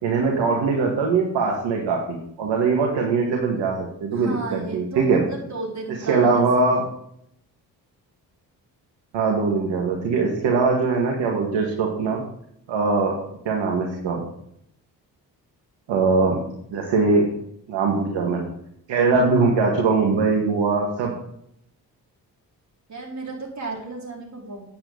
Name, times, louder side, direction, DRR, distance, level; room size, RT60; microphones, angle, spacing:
voice 1, 0.0-5.2 6.1-6.8 9.1-12.2 12.7-13.2 13.5-14.2 15.9-16.4 16.7-17.3 17.7-18.4 18.9-21.1, right 4 dB, 70° right, 0 dB, 2.0 m, -21 dB
voice 2, 4.1-6.7 22.9-24.6, right 3 dB, 35° right, -3 dB, 4.8 m, -34 dB
9.1 x 9.0 x 4.0 m, 0.71 s
hypercardioid pair, 45°, 45 cm